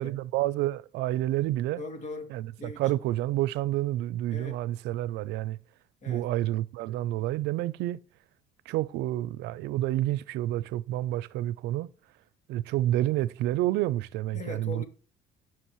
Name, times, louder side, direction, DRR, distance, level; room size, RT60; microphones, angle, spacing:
voice 1, 0.0-1.8 2.3-5.6 6.1-8.0 8.7-11.9 12.5-14.8, right 15 dB, 90° right, 0.5 m, -29 dB
voice 2, 1.8-2.3 2.6-2.8 4.3-4.6 6.0-6.3 12.8-12.9 14.3-14.8, left 2 dB, 50° left, 2.6 m, -39 dB
17.5 x 6.0 x 3.1 m
cardioid pair, 110°, 17 cm